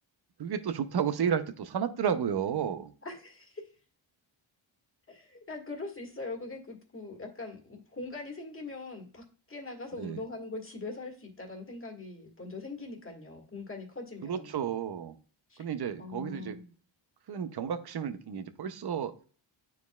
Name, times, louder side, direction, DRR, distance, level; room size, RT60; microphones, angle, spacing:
voice 1, 0.4-2.9 10.0-10.2 14.2-15.2 15.6-16.6 17.3-19.1, right 8 dB, 55° right, 11 dB, 0.7 m, -32 dB
voice 2, 3.0-3.6 5.1-14.5 15.5-15.7 16.0-16.7, left 3 dB, 25° left, 0 dB, 1.7 m, -42 dB
9.3 x 4.7 x 2.3 m, 0.40 s
cardioid pair, 100°, 49 cm